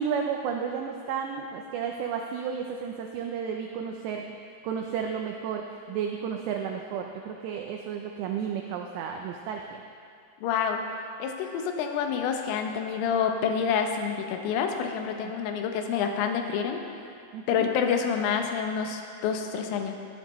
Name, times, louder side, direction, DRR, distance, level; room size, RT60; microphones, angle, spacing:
voice 1, 0.0-4.3 4.6-9.8 17.3-17.7, right 7 dB, 90° right, 2 dB, 2.4 m, -32 dB
voice 2, 10.4-10.8 11.2-16.8 17.5-20.0, left 7 dB, 85° left, 4 dB, 3.4 m, -28 dB
18.0 x 10.5 x 3.1 m, 2.4 s
omnidirectional pair, 5.7 m